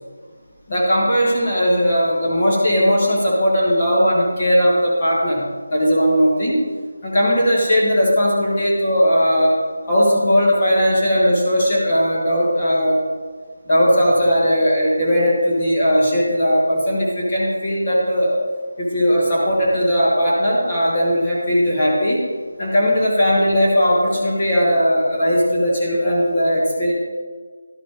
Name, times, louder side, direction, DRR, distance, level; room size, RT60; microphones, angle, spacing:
voice 1, 0.7-5.4 5.7-6.6 7.0-9.6 9.9-13.0 13.6-18.4 18.8-22.2 22.6-26.9, equal, 25° left, -5 dB, 1.4 m, -18 dB
12.0 x 4.7 x 3.9 m, 1.5 s
figure-of-eight pair, 175°, 0 cm